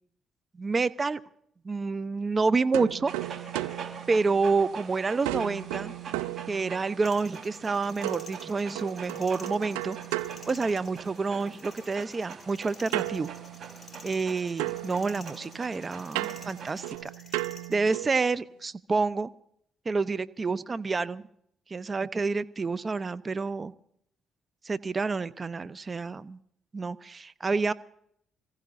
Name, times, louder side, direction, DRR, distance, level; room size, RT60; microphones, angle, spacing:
voice 1, 0.5-1.2 1.6-3.1 4.1-5.9 6.5-10.0 10.5-13.3 14.0-17.1 17.7-19.3 19.8-21.3 21.7-23.7 24.6-26.4 26.7-27.7, right 4 dB, 35° right, 14 dB, 0.8 m, -28 dB
sound 1, 2.7-4.8 5.2-7.1 8.0-11.3 12.9-14.3 14.6-18.3, right 18 dB, 90° right, 0.5 m, -36 dB
Dog, 3.1-17.0, right 6 dB, 60° right, 4.1 m, -44 dB
sound 2, 7.0-17.8, left 4 dB, 35° left, 3.9 m, -52 dB
27.0 x 15.5 x 2.6 m, 0.69 s
hypercardioid pair, 50°, 0 cm